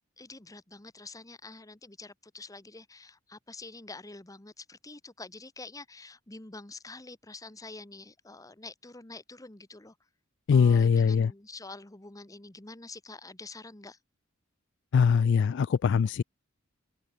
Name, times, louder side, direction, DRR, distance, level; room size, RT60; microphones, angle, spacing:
voice 1, 0.2-9.9 10.5-14.0, left 3 dB, 15° left, 1.2 m, -46 dB
voice 2, 10.5-11.3 14.9-16.2, left 6 dB, 60° left, 0.3 m, -22 dB
head